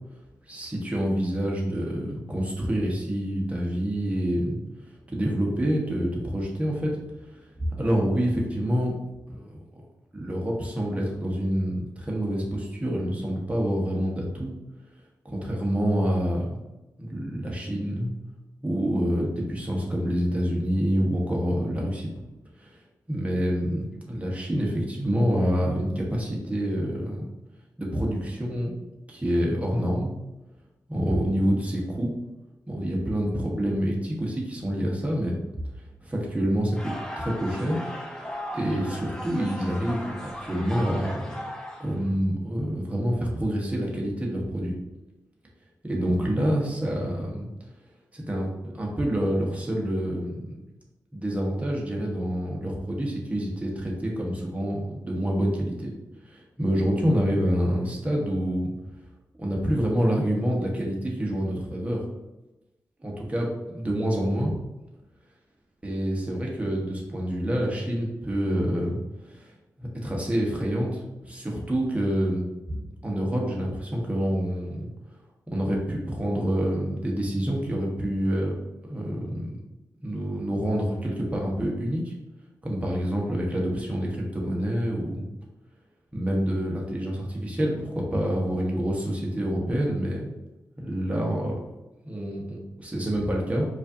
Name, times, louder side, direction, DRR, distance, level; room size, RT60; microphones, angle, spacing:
voice 1, 0.5-4.6 5.1-6.9 7.3-7.5 7.8-8.9 9.3-9.6 10.1-14.5 15.2-16.6 17.0-18.1 18.6-22.1 22.6-22.8 23.1-27.3 27.8-28.8 29.1-30.1 30.9-32.1 32.7-35.4 36.0-37.8 38.5-41.4 41.8-44.7 45.8-47.5 48.1-50.6 51.1-55.9 56.2-58.7 59.3-62.0 63.0-63.5 63.7-64.5 65.8-69.0 69.2-69.5 69.8-74.9 75.5-78.5 78.9-79.6 80.0-82.1 82.6-85.3 86.1-90.4 90.8-91.5 92.0-93.7, equal, 20° right, -2 dB, 1.1 m, -27 dB
sound 1, 36.7-42.1, equal, 10° left, 0.8 m, -37 dB
4.8 x 2.6 x 2.8 m, 1.0 s
cardioid pair, 50°, 7 cm